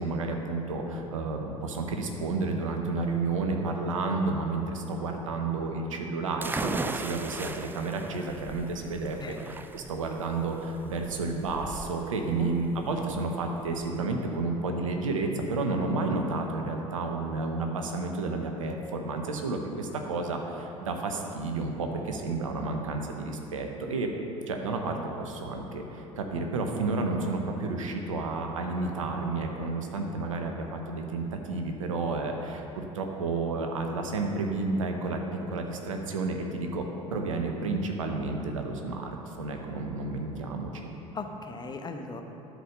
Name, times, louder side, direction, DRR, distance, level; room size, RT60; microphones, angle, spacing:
voice 1, 0.0-24.1 24.5-35.2 35.5-40.9, right 3 dB, 80° right, 3 dB, 1.0 m, -31 dB
sound 1, 6.4-13.9, right 3 dB, 10° right, 0.4 m, -38 dB
voice 2, 41.1-42.2, left 4 dB, 25° left, 5 dB, 1.0 m, -37 dB
12.5 x 4.7 x 6.7 m, 3.0 s
figure-of-eight pair, 65°, 17 cm